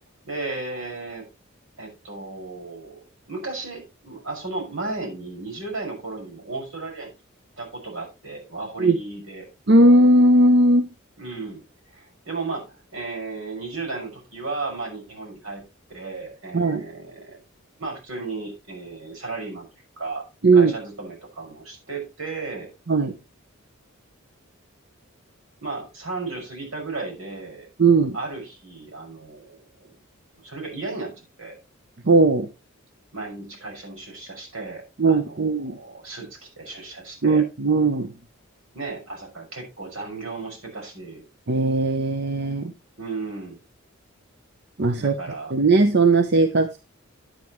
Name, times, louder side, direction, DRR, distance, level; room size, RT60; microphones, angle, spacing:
voice 1, 0.2-1.3 1.8-7.1 7.6-9.5 11.2-11.6 11.9-17.4 17.8-19.7 20.0-20.2 20.5-22.7 25.6-27.7 28.1-29.9 30.4-31.6 33.1-37.4 38.7-41.2 43.0-43.6 45.0-45.5, right 3 dB, 80° right, 0 dB, 6.1 m, -34 dB
voice 2, 9.7-10.9 16.5-16.8 20.4-20.7 22.9-23.2 27.8-28.2 32.0-32.5 35.0-35.8 37.2-38.1 41.5-42.7 44.8-45.2 45.5-46.8, right 2 dB, 55° right, 9 dB, 0.8 m, -18 dB
10.5 x 9.1 x 3.1 m, 0.27 s
head